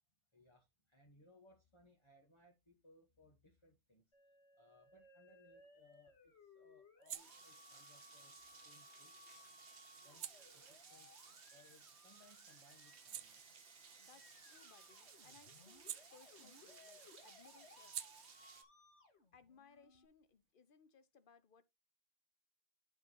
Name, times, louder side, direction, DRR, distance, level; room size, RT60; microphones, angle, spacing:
voice 1, 0.3-4.0 4.6-9.1 9.9-13.6, left 1 dB, 25° left, 1.6 m, -68 dB
Musical instrument, 4.1-20.1, left 3 dB, 80° left, 2.5 m, -64 dB
sound 1, 5.3-12.2 12.6-16.8 17.0-20.5, right 10 dB, 85° right, 1.0 m, -55 dB
Rain, 7.1-18.6, right 6 dB, 60° right, 1.3 m, -60 dB
voice 2, 14.0-18.5 19.3-21.6, left 6 dB, 55° left, 1.1 m, -66 dB
11.5 x 4.6 x 3.0 m
omnidirectional pair, 1.1 m